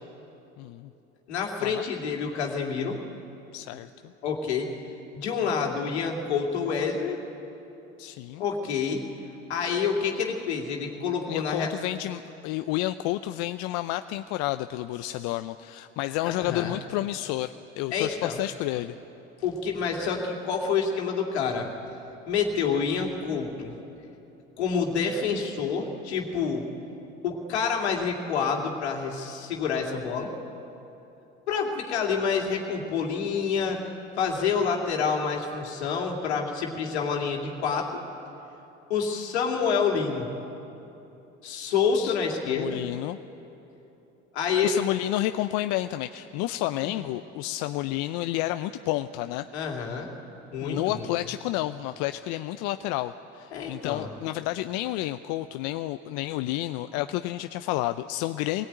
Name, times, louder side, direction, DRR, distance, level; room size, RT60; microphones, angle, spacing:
voice 1, 0.6-0.9 1.6-1.8 3.5-3.9 8.0-8.4 11.3-18.9 41.9-42.2 42.5-43.2 44.6-49.5 50.6-58.7, left 16 dB, 65° left, 10 dB, 0.6 m, -30 dB
voice 2, 1.3-3.0 4.2-4.7 5.1-7.2 8.4-9.0 9.5-11.7 16.3-16.7 17.9-18.4 19.4-21.7 22.3-23.7 24.6-26.6 27.2-30.3 31.5-33.8 34.2-37.9 38.9-40.3 41.4-42.8 44.3-44.8 46.8-47.0 49.5-50.1 50.5-51.1 53.5-54.1, left 6 dB, 90° left, 1 dB, 2.6 m, -28 dB
22.0 x 17.5 x 9.0 m, 3.0 s
hypercardioid pair, 70°, 32 cm